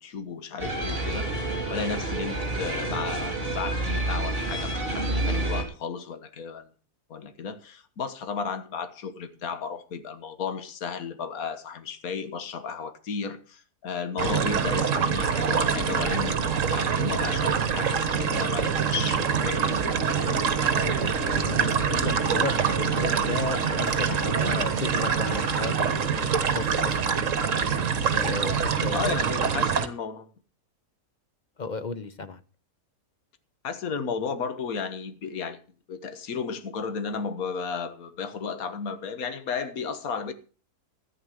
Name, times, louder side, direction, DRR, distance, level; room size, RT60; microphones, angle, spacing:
voice 1, 0.0-6.7 7.1-16.4 16.7-19.6 28.9-30.3 33.6-35.6 35.9-40.3, left 5 dB, 65° left, 1.7 m, -34 dB
sound 1, 0.6-5.6, right 2 dB, 35° right, 3.9 m, -29 dB
sound 2, 14.2-29.9, right 6 dB, 55° right, 1.6 m, -25 dB
voice 2, 20.7-27.2 28.1-29.1 31.6-32.4, left 3 dB, 35° left, 0.9 m, -34 dB
sound 3, 22.3-27.2, right 1 dB, 15° left, 1.6 m, -44 dB
14.5 x 8.8 x 6.4 m
omnidirectional pair, 1.7 m